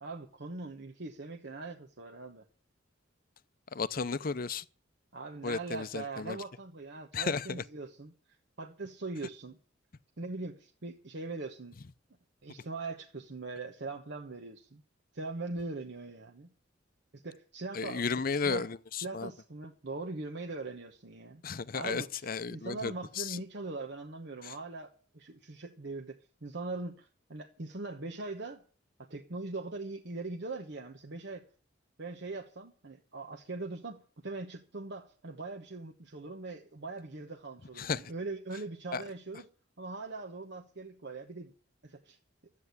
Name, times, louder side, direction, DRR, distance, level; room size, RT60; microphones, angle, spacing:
voice 1, 0.0-2.4 5.1-9.6 10.2-11.8 12.4-14.8 15.1-16.5 17.1-18.1 18.4-18.7 19.0-21.4 21.7-28.6 29.0-31.5 32.0-39.5 39.8-41.5 41.8-42.2, right 3 dB, 60° right, 1.1 m, -41 dB
voice 2, 3.7-4.6 5.4-6.4 7.1-7.6 17.7-19.3 21.4-23.4 24.4-24.5 37.8-38.0 38.9-39.0, left 5 dB, 50° left, 0.6 m, -34 dB
12.0 x 8.5 x 9.5 m
head